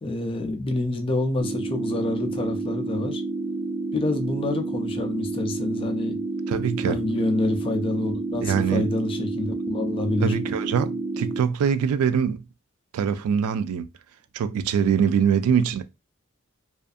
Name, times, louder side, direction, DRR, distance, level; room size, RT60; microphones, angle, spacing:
voice 1, 0.0-3.2 3.9-6.2 6.9-10.3, left 2 dB, 25° left, 0.3 m, -27 dB
sound 1, 1.4-11.4, right 3 dB, 30° right, 0.6 m, -30 dB
voice 2, 6.5-7.0 8.4-8.9 10.2-12.4 12.9-13.9 14.3-15.8, right 7 dB, 90° right, 0.3 m, -23 dB
2.5 x 2.4 x 2.3 m
head